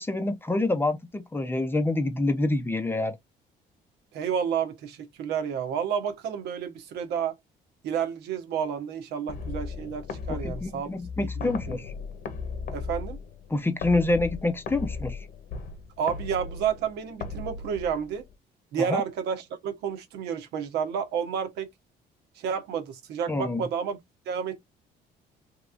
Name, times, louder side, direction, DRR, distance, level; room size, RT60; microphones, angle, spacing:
voice 1, 0.0-3.2 10.3-11.9 13.5-15.3 18.8-19.0 23.3-23.6, left 2 dB, 15° left, 0.6 m, -27 dB
voice 2, 4.1-7.3 7.8-10.9 11.2-11.8 12.7-13.2 16.0-18.2 18.7-21.7 22.4-24.0 24.3-24.6, right 7 dB, 80° right, 1.0 m, -30 dB
sound 1, 9.3-18.3, left 4 dB, 60° left, 1.0 m, -37 dB
3.3 x 2.9 x 2.5 m
cardioid pair, 110°, 17 cm